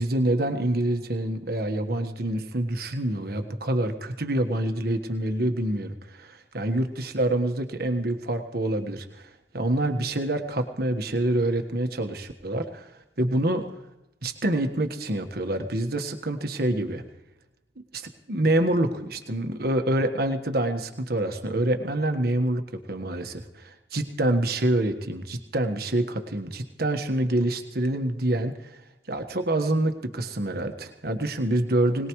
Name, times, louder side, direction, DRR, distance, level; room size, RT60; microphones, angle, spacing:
voice 1, 0.0-12.9 13.2-13.7 14.2-17.0 17.9-28.8 29.1-32.1, right 1 dB, 60° right, 6 dB, 1.5 m, -26 dB
22.0 x 19.5 x 3.2 m, 0.94 s
head